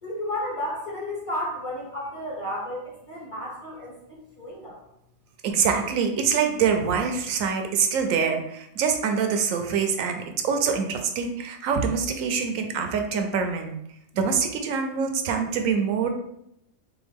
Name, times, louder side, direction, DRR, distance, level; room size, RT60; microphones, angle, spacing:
voice 1, 0.0-4.8, left 1 dB, 25° left, -4 dB, 1.2 m, -33 dB
voice 2, 5.4-13.7 14.1-16.1, right 6 dB, 75° right, 5 dB, 0.9 m, -25 dB
3.6 x 3.5 x 3.5 m, 0.78 s
omnidirectional pair, 1.5 m